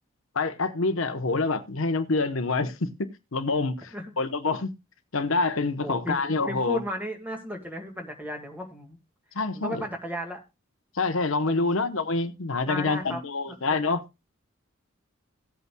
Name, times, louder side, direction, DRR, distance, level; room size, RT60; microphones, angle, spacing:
voice 1, 0.3-2.9 3.3-4.7 5.1-6.8 9.3-9.8 10.9-14.0, left 3 dB, 70° left, 1.0 m, -26 dB
voice 2, 5.8-6.2 6.5-9.0 9.5-10.4 11.5-11.8 12.7-13.2 13.8-13.9, equal, 10° right, 1.8 m, -34 dB
18.0 x 8.3 x 2.2 m
head